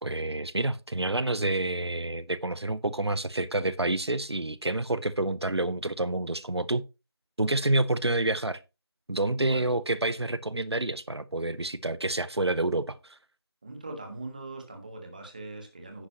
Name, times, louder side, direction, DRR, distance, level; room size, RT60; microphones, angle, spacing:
voice 1, 0.0-6.8 7.4-8.6 9.1-13.2, right 2 dB, 85° right, 0.7 m, -28 dB
voice 2, 9.3-9.8 13.6-16.1, right 2 dB, 20° right, 1.3 m, -41 dB
10.0 x 9.7 x 2.9 m
figure-of-eight pair, 170°, 14 cm